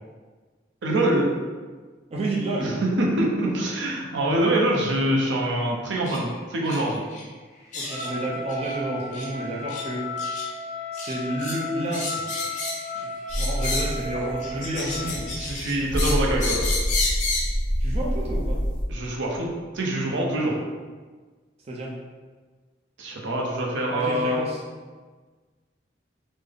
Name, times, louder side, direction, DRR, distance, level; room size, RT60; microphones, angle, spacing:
voice 1, 0.8-1.3 2.6-7.0 14.8-14.9 15.4-16.7 18.9-20.6 23.0-24.4, right 1 dB, 80° right, -2 dB, 0.6 m, -25 dB
voice 2, 2.1-2.8 4.1-4.3 7.7-10.2 10.9-12.3 12.9-13.1 13.4-15.3 17.8-18.6 21.7-21.9 23.9-24.6, right 1 dB, 35° right, -4 dB, 0.4 m, -30 dB
sound 1, 6.1-6.2 6.6-6.8 7.1-7.2 7.7-8.1 8.5-8.8 9.1-9.3 9.7-9.9 10.2-10.5 11.0-11.6 11.9-12.9 13.3-14.0 14.4-17.5, left 3 dB, 45° left, 0.5 m, -31 dB
Trumpet, 7.8-15.2, left 2 dB, 20° right, 1.0 m, -34 dB
sound 2, 13.3-18.8, equal, 5° left, 1.0 m, -27 dB
3.7 x 2.0 x 3.3 m, 1.4 s
head